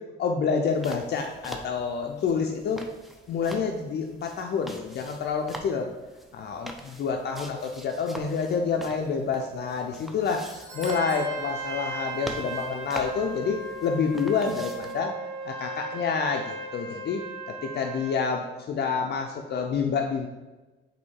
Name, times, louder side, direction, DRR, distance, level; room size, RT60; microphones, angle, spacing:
voice 1, 0.2-2.8 3.3-5.9 6.3-15.1 15.4-17.2 17.5-20.3, left 5 dB, 55° left, 2 dB, 0.5 m, -28 dB
sound 1, 0.7-15.0, equal, ahead, 0.4 m, -44 dB
Doorbell, 10.4-12.5 12.8-12.9 13.6-13.7, right 3 dB, 85° right, 1.5 m, -48 dB
Trumpet, 10.7-18.3, right 2 dB, 25° right, 1.0 m, -37 dB
4.2 x 2.7 x 4.6 m, 1.2 s
cardioid pair, 90°, 20 cm